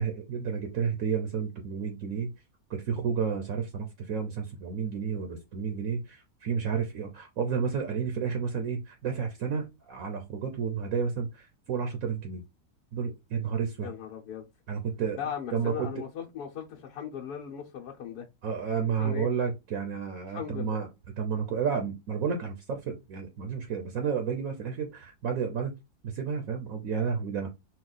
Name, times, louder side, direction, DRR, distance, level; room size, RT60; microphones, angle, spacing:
voice 1, 0.0-2.3 2.7-12.4 12.9-13.9 14.7-15.2 15.5-15.9 18.4-20.9 21.2-25.7 26.0-27.5, right 6 dB, 65° right, 1.2 m, -31 dB
voice 2, 13.8-14.5 15.2-18.3 19.0-19.3 20.3-20.8, left 8 dB, 85° left, 1.4 m, -38 dB
4.5 x 2.3 x 3.8 m
omnidirectional pair, 1.6 m